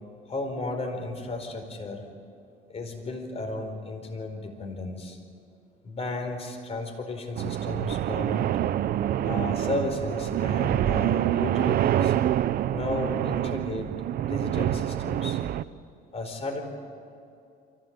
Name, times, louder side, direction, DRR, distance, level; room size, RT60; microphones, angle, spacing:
voice 1, 0.3-2.0 2.7-5.2 5.8-8.5 9.2-12.1 12.7-13.9 14.2-15.4 16.1-16.6, left 2 dB, 35° left, 4 dB, 4.5 m, -34 dB
sound 1, 7.3-15.6, right 12 dB, 65° right, 0.7 m, -26 dB
24.0 x 17.0 x 8.8 m, 2.6 s
cardioid pair, 110°, 17 cm